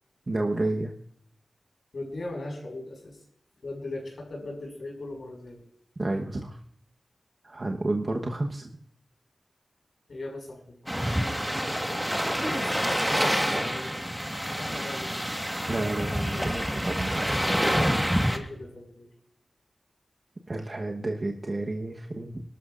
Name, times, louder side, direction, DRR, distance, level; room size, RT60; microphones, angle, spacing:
voice 1, 0.3-0.9 6.0-6.6 7.4-8.7 15.7-17.2 20.5-22.4, right 2 dB, 45° right, 1 dB, 1.2 m, -30 dB
voice 2, 1.9-3.2 3.6-5.6 10.1-11.2 12.4-14.0 14.5-15.3 16.3-16.6 17.4-19.1, left 2 dB, 80° left, 1 dB, 5.8 m, -38 dB
sound 1, 10.9-18.4, equal, 5° right, 1.5 m, -27 dB
24.0 x 13.0 x 2.6 m, 0.68 s
cardioid pair, 60°, 0 cm